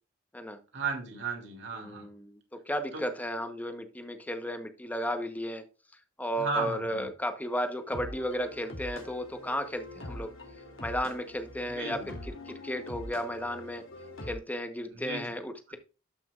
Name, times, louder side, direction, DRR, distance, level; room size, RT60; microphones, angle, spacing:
voice 1, 0.7-2.1 6.4-7.1 11.7-12.1 14.9-15.2, right 4 dB, 65° right, 3.1 m, -35 dB
voice 2, 1.7-5.6 6.2-10.3 10.8-13.8 14.3-15.8, equal, 10° left, 1.1 m, -34 dB
sound 1, 7.4-14.3, left 1 dB, 85° left, 2.8 m, -44 dB
12.5 x 5.8 x 2.5 m
head